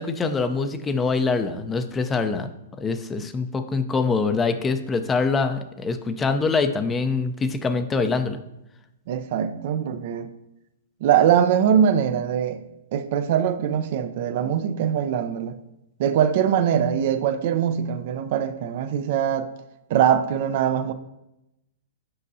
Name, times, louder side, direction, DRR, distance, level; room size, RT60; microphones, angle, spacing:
voice 1, 0.0-2.5 2.8-8.4, left 4 dB, 15° left, 9 dB, 0.5 m, -24 dB
voice 2, 9.1-10.3 11.0-12.6 12.9-15.6 16.0-19.5 19.9-20.9, right 9 dB, 55° right, 11 dB, 0.5 m, -22 dB
7.5 x 5.5 x 2.7 m, 0.88 s
hypercardioid pair, 130°, 0 cm